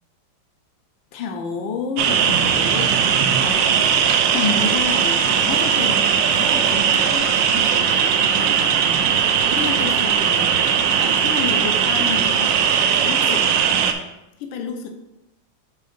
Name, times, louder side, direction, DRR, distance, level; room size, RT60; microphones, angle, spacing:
voice 1, 1.1-3.0 3.4-4.0 4.3-9.1 9.5-13.7 14.4-14.9, left 4 dB, 70° left, 4 dB, 1.5 m, -30 dB
sound 1, 2.0-13.9, right 7 dB, 75° right, 1.2 m, -18 dB
6.6 x 3.7 x 5.1 m, 0.90 s
omnidirectional pair, 2.2 m